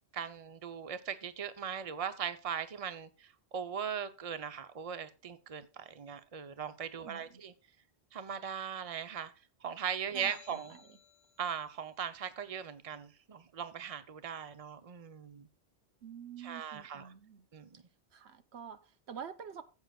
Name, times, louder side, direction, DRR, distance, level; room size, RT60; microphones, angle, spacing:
voice 1, 0.1-7.5 8.1-9.3 9.6-10.8 11.4-15.5 16.4-17.1 17.5-17.7, right 8 dB, 35° right, 0.8 m, -39 dB
voice 2, 7.0-7.5 10.1-11.0 16.0-17.5 18.1-19.6, right 7 dB, 80° right, 1.1 m, -48 dB
sound 1, 10.2-11.5, left 8 dB, 90° left, 1.2 m, -57 dB
15.5 x 7.8 x 2.4 m
omnidirectional pair, 1.1 m